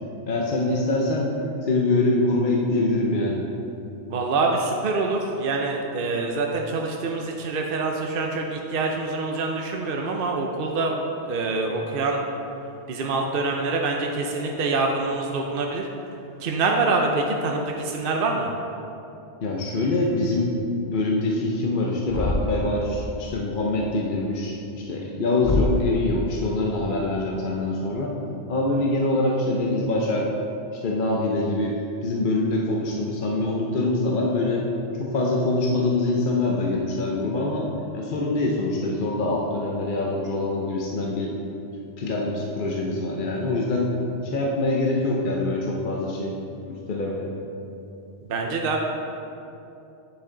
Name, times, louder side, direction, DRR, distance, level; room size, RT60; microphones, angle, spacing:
voice 1, 0.3-1.3 1.6-3.4 19.4-20.6 20.9-28.1 28.5-30.3 30.7-34.7 35.0-37.7 37.9-41.3 42.0-43.9 44.2-46.4 46.7-47.3, left 2 dB, 50° left, -2 dB, 0.9 m, -24 dB
voice 2, 4.1-11.0 11.3-12.2 12.9-15.9 16.4-18.5 48.3-48.8, right 3 dB, 55° right, 1 dB, 0.8 m, -25 dB
Thump thud, 22.1-22.7 25.4-26.0, left 2 dB, 25° left, 0.3 m, -25 dB
9.1 x 6.8 x 3.8 m, 2.8 s
omnidirectional pair, 1.2 m